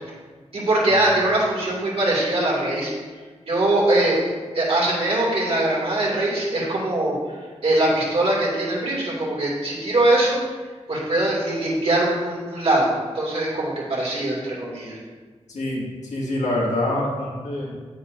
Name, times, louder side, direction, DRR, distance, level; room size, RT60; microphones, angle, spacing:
voice 1, 0.5-2.9 3.5-4.2 4.5-7.1 7.6-10.4 10.9-15.0, right 1 dB, 60° right, -5 dB, 2.7 m, -22 dB
voice 2, 15.5-17.8, left 1 dB, 85° left, -4 dB, 2.1 m, -26 dB
9.7 x 7.9 x 2.7 m, 1.5 s
wide cardioid pair, 145°, 12 cm